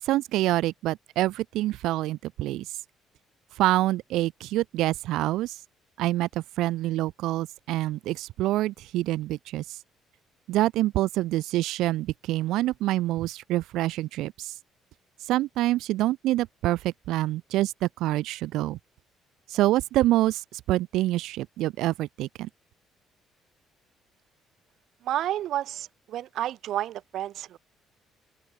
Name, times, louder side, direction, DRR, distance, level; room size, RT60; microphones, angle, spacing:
voice 1, 0.0-2.7 3.6-5.6 6.0-9.8 10.5-14.5 15.2-18.8 19.5-22.5, right 16 dB, 85° right, 6.8 m, -26 dB
voice 2, 25.0-27.6, right 12 dB, 60° right, 6.9 m, -31 dB
open air
cardioid pair, 155°, 0 cm